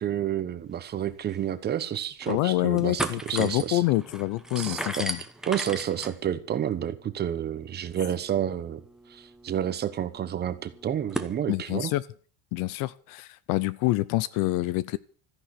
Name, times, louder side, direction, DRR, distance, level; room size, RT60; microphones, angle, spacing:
voice 1, 0.0-3.8 4.6-5.1 5.5-8.8 9.1-11.9, right 10 dB, 25° right, 12 dB, 1.1 m, -30 dB
sound 1, 1.0-1.1 1.3-1.4 1.9-2.4 2.7-11.3, right 1 dB, ahead, 1.0 m, -38 dB
voice 2, 2.3-5.2 11.5-12.0 12.5-15.0, left 18 dB, 50° left, 19 dB, 0.7 m, -26 dB
14.0 x 10.5 x 8.3 m, 0.42 s
cardioid pair, 175°, 42 cm